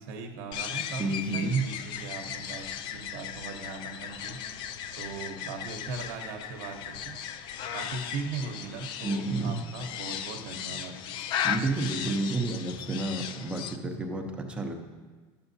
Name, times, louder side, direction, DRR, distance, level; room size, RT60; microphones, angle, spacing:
voice 1, 0.0-4.4 5.0-7.2 7.7-11.0, right 4 dB, 65° right, 3 dB, 0.8 m, -39 dB
sound 1, 0.5-13.8, left 9 dB, 40° left, 0.4 m, -37 dB
voice 2, 1.0-1.6 9.0-9.6 11.4-14.8, right 3 dB, 10° right, 2 dB, 0.7 m, -30 dB
11.5 x 7.0 x 2.7 m, 1.4 s
cardioid pair, 165°, 12 cm